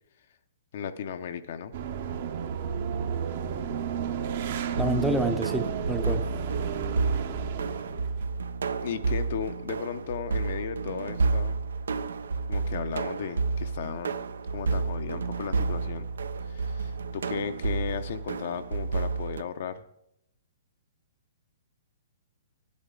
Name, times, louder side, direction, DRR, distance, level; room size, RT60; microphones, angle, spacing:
voice 1, 0.7-1.7 8.8-11.6 12.5-14.1 14.5-16.1 16.4-19.8, left 7 dB, 60° left, 10 dB, 0.7 m, -35 dB
sound 1, 1.7-8.2, right 7 dB, 55° right, 0.9 m, -32 dB
voice 2, 4.7-6.3, right 1 dB, ahead, 6 dB, 0.6 m, -28 dB
sound 2, 4.7-19.4, right 4 dB, 85° right, 0.6 m, -31 dB
10.5 x 8.6 x 3.8 m, 0.79 s
hypercardioid pair, 145°, 0 cm